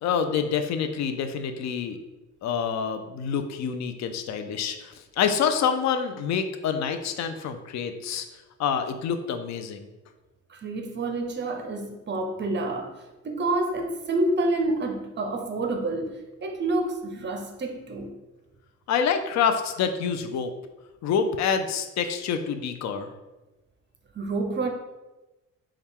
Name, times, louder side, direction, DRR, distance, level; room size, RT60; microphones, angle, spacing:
voice 1, 0.0-2.0 2.4-8.3 8.6-9.9 18.9-20.5 21.0-23.1, left 7 dB, 65° left, 7 dB, 0.5 m, -27 dB
voice 2, 10.5-12.9 13.2-18.1 24.1-24.7, right 2 dB, 35° right, 4 dB, 0.6 m, -28 dB
4.2 x 2.4 x 3.6 m, 1.1 s
cardioid pair, 90°, 30 cm